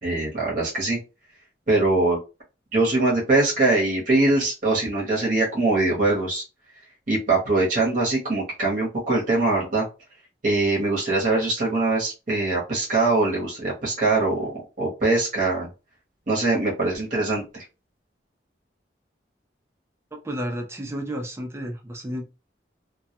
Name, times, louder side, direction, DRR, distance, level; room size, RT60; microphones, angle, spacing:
voice 1, 0.0-1.0 1.7-2.2 2.7-6.4 7.1-9.9 10.4-15.7 16.3-17.6, right 2 dB, 45° right, -5 dB, 0.8 m, -22 dB
voice 2, 20.1-22.2, equal, 15° right, 3 dB, 0.4 m, -32 dB
2.2 x 2.1 x 2.8 m, 0.29 s
head